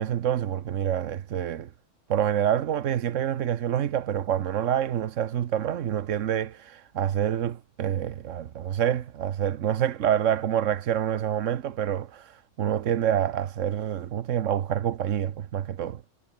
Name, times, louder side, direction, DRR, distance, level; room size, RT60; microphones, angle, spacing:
voice 1, 0.0-1.7 2.1-16.0, right 10 dB, 75° right, 1.2 m, -27 dB
omnidirectional pair, 1.3 m